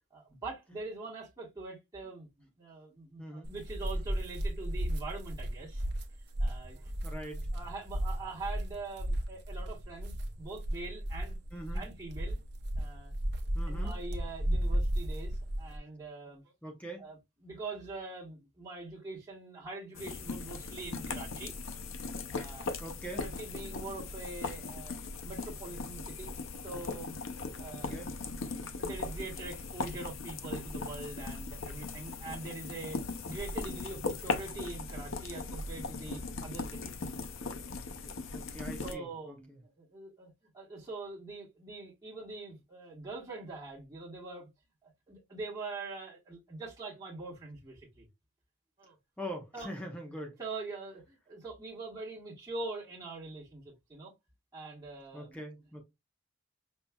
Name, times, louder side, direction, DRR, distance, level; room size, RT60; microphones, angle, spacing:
voice 1, 0.1-5.9 6.4-6.9 7.5-11.4 11.7-12.4 12.8-13.1 13.7-16.5 17.0-21.5 22.3-22.8 23.1-26.3 26.6-27.2 27.6-37.1 38.0-38.1 38.8-44.5 44.8-48.1 48.8-49.0 49.5-49.7 50.4-54.1 54.5-55.4, right 3 dB, 20° right, 1.6 m, -44 dB
voice 2, 3.2-3.5 7.0-7.5 11.5-11.8 13.5-13.9 16.6-17.0 22.8-23.2 27.7-28.1 38.3-39.6 49.2-50.4 55.1-55.8, equal, 5° left, 0.9 m, -43 dB
sound 1, 3.4-15.8, right 1 dB, 55° right, 0.8 m, -34 dB
sound 2, 19.9-38.9, left 3 dB, 85° left, 0.6 m, -39 dB
5.5 x 2.9 x 2.3 m
head